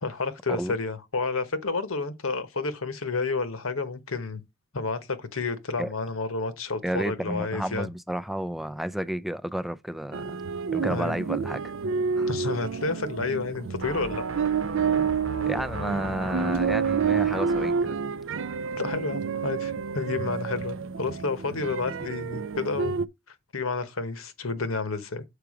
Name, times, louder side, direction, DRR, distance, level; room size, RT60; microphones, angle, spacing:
voice 1, 0.0-4.4 4.7-7.9 10.9-11.1 12.3-14.3 18.8-22.9 23.5-25.2, left 3 dB, 90° left, 1.2 m, -30 dB
voice 2, 6.8-10.4 10.7-11.6 12.2-12.3 14.9-15.1 15.5-18.0, equal, ahead, 0.3 m, -31 dB
sound 1, 10.1-23.1, right 6 dB, 65° right, 0.5 m, -29 dB
sound 2, 13.8-17.8, right 3 dB, 85° right, 1.0 m, -35 dB
6.9 x 4.9 x 4.8 m
head